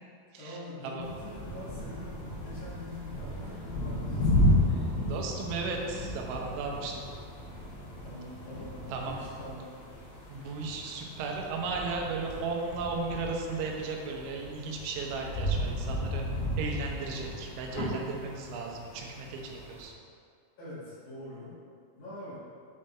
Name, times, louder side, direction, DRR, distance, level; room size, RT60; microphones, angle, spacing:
voice 1, 0.3-4.7 8.0-9.8 10.2-10.5 20.6-21.6 21.9-22.4, left 2 dB, 50° left, -10 dB, 2.7 m, -44 dB
sound 1, 1.0-19.9, left 1 dB, 75° left, 4.1 m, -33 dB
voice 2, 5.1-7.1 8.9-9.2 10.3-16.3 16.6-19.9, right 4 dB, 90° right, 0 dB, 3.3 m, -35 dB
8.7 x 5.1 x 4.3 m, 2.3 s
omnidirectional pair, 5.2 m